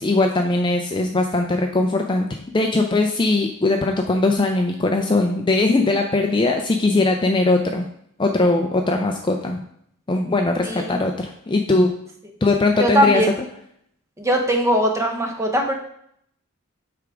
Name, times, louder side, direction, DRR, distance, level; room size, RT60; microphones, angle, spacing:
voice 1, 0.0-7.9 8.2-9.6 10.1-11.9 12.4-13.2, left 2 dB, 20° left, 3 dB, 0.4 m, -20 dB
voice 2, 10.6-11.0 12.8-13.3 14.2-15.7, equal, 15° right, 2 dB, 0.9 m, -20 dB
8.0 x 3.5 x 5.0 m, 0.69 s
head